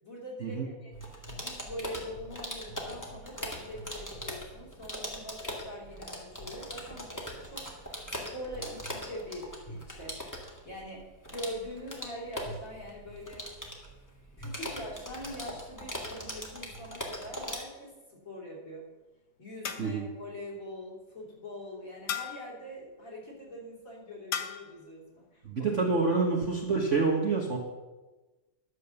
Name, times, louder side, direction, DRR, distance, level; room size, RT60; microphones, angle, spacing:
voice 1, 0.0-0.9 1.4-10.2 10.6-13.4 14.4-18.9 19.4-25.7, equal, 40° left, -3 dB, 3.5 m, -43 dB
sound 1, 0.9-17.6, equal, 10° left, 1.7 m, -41 dB
sound 2, 17.4-18.0 19.6-20.2 22.1-22.6 24.3-24.8, left 8 dB, 60° left, 1.3 m, -37 dB
voice 2, 25.4-27.6, right 4 dB, 40° right, -1 dB, 1.3 m, -27 dB
11.5 x 7.2 x 6.9 m, 1.2 s
omnidirectional pair, 2.4 m